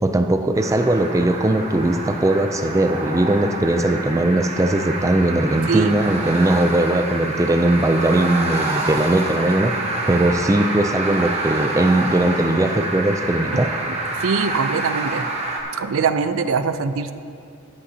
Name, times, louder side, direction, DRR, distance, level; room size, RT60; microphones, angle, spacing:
voice 1, 0.0-9.7 10.1-13.7, right 1 dB, 15° right, 7 dB, 0.3 m, -19 dB
sound 1, 0.5-15.6, right 2 dB, 30° right, 1.0 m, -27 dB
voice 2, 14.2-15.3 15.8-17.1, right 5 dB, 80° right, 11 dB, 0.4 m, -22 dB
17.5 x 8.4 x 2.8 m, 2.5 s
head